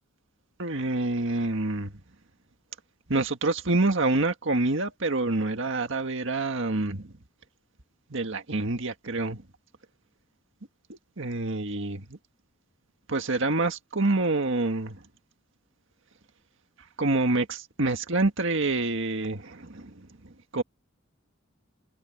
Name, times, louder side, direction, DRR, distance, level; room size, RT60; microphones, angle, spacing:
voice 1, 0.6-1.9 3.1-7.1 8.1-9.4 10.9-12.2 13.1-15.0 17.0-20.6, right 2 dB, 65° right, 1.8 m, -27 dB
head